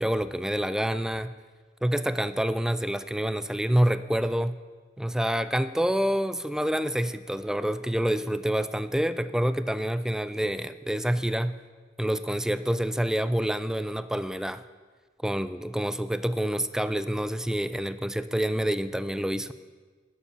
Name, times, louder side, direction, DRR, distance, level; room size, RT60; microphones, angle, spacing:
voice 1, 0.0-1.3 1.8-4.6 5.0-11.6 12.0-14.6 15.2-19.5, equal, 5° right, 14 dB, 0.4 m, -27 dB
12.0 x 7.2 x 9.9 m, 1.5 s
head